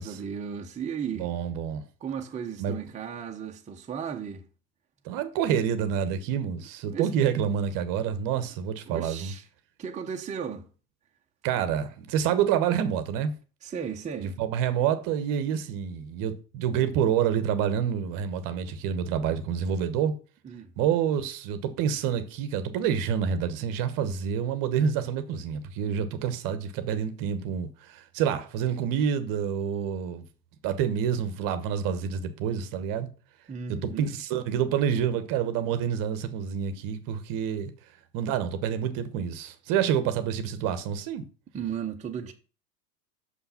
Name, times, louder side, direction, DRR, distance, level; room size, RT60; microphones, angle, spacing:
voice 1, 0.0-1.3 2.0-4.4 6.9-7.1 8.9-9.5 9.8-10.7 13.6-14.4 20.4-20.7 33.5-34.1 41.5-42.3, right 7 dB, 15° right, 0.9 m, -35 dB
voice 2, 1.2-1.8 2.6-2.7 5.0-9.3 11.4-13.3 14.4-20.1 20.8-30.2 30.6-33.1 33.7-37.7 38.1-41.2, right 8 dB, 40° right, 1.1 m, -28 dB
6.3 x 5.7 x 5.7 m
hypercardioid pair, 95°, 50 cm